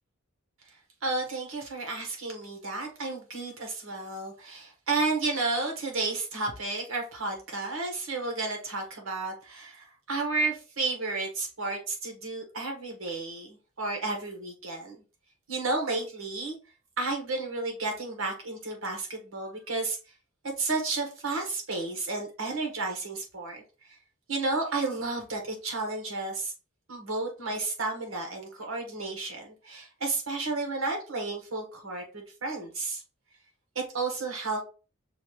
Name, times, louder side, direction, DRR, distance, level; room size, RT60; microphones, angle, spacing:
voice 1, 1.0-14.9 15.5-16.5 17.0-20.0 20.6-23.6 24.3-26.5 26.9-33.0 33.7-34.6, right 3 dB, 70° right, 2 dB, 1.4 m, -32 dB
6.2 x 2.4 x 3.0 m, 0.33 s
head